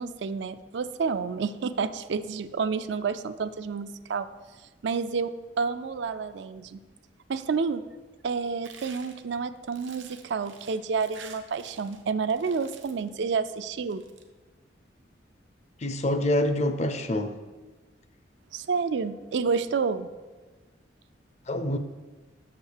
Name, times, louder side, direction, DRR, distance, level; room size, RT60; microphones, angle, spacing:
voice 1, 0.0-4.3 4.8-6.8 7.3-7.8 8.2-14.0 18.5-20.1, right 5 dB, 70° right, 12 dB, 0.4 m, -29 dB
sound 1, 8.6-12.0 12.3-13.1 13.8-14.2, right 6 dB, 90° right, 0.8 m, -49 dB
voice 2, 15.8-17.3 21.5-21.8, left 1 dB, 35° left, 10 dB, 0.5 m, -26 dB
6.5 x 5.5 x 6.6 m, 1.3 s
head